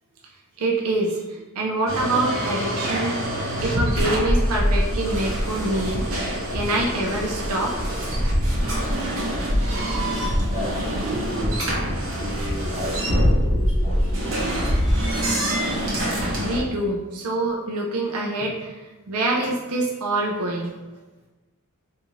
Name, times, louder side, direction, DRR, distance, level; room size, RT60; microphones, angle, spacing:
voice 1, 0.6-3.2 3.6-6.0 6.5-7.7 8.9-9.0 16.4-18.7 19.1-20.7, right 2 dB, 85° right, -1 dB, 0.5 m, -25 dB
sound 1, 1.9-16.6, equal, 65° right, 0.9 m, -24 dB
voice 2, 10.4-14.5, right 1 dB, 30° right, -6 dB, 0.9 m, -33 dB
3.7 x 2.5 x 2.9 m, 1.2 s
head